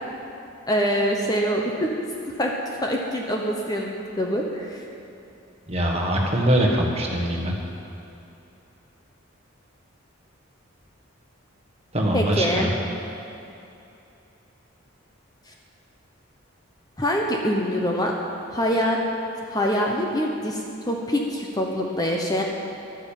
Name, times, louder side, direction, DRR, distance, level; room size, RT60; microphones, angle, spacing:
voice 1, 0.7-1.9 2.4-4.8 12.1-12.7 15.5-15.6 17.0-18.1 18.5-19.0 19.5-22.4, equal, 20° left, 0 dB, 0.9 m, -24 dB
voice 2, 5.7-7.5 11.9-12.7, equal, 30° right, -1 dB, 1.5 m, -22 dB
12.0 x 9.7 x 7.2 m, 2.8 s
head